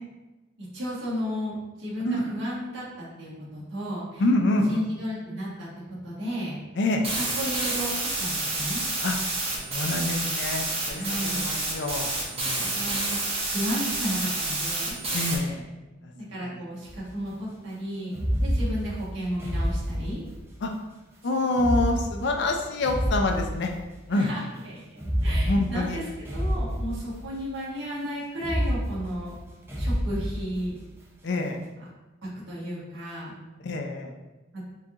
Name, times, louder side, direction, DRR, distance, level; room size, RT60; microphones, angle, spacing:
voice 1, 0.6-4.2 4.5-5.7 6.0-6.6 7.1-8.8 10.9-11.5 12.6-15.0 15.3-15.5 16.1-20.2 24.1-26.0 26.3-29.3 29.8-30.8 31.3-31.5 32.5-33.3 34.5-34.6, equal, 65° right, -7 dB, 1.4 m, -33 dB
voice 2, 4.2-4.8 6.8-7.0 9.0-9.2 9.7-12.7 15.1-15.7 16.0-16.1 16.4-16.5 20.6-20.7 21.2-23.7 24.1-24.3 25.2-26.0 31.2-31.6 33.6-34.1, left 2 dB, 60° left, 3 dB, 0.4 m, -27 dB
sound 1, 7.0-15.4, right 2 dB, 30° right, 0.9 m, -29 dB
sound 2, 16.9-17.1 18.1-20.5 21.5-24.1 24.9-27.5 28.3-30.9, equal, 10° right, 0.5 m, -29 dB
4.5 x 2.4 x 2.9 m, 1.1 s
head